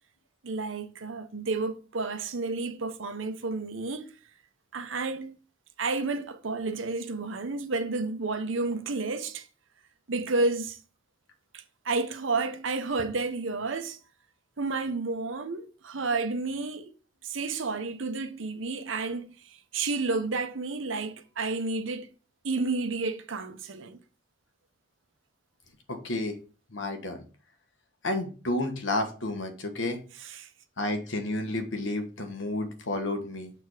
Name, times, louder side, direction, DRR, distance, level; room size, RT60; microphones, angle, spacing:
voice 1, 0.4-4.1 4.7-5.4 5.8-9.5 10.1-10.8 11.5-14.0 14.6-16.9 17.2-22.1 22.4-24.0 30.2-30.5, right 3 dB, 85° right, 0.8 m, -31 dB
voice 2, 25.9-26.4 26.7-27.2 28.0-30.0 30.8-33.5, left 2 dB, 80° left, 1.3 m, -31 dB
6.6 x 3.5 x 4.7 m
head